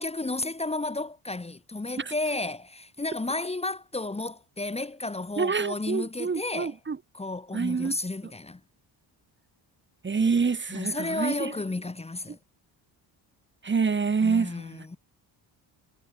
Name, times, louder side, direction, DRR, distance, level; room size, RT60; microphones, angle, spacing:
voice 1, 0.0-6.8 7.1-8.6 10.7-12.4 14.2-15.0, left 2 dB, 15° left, 2.1 m, -32 dB
voice 2, 5.4-7.0 7.5-7.9 10.0-11.5 13.6-14.8, right 5 dB, 25° right, 2.1 m, -27 dB
cardioid pair, 135°, 46 cm